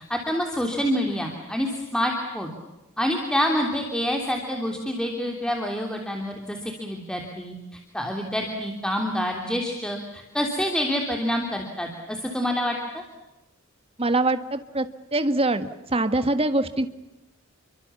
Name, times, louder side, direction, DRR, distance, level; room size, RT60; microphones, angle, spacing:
voice 1, 0.0-2.5 3.0-13.0, equal, 5° left, 2 dB, 3.2 m, -27 dB
voice 2, 14.0-14.9 15.1-16.9, right 2 dB, 30° right, 9 dB, 1.7 m, -23 dB
29.5 x 24.5 x 7.2 m, 0.99 s
head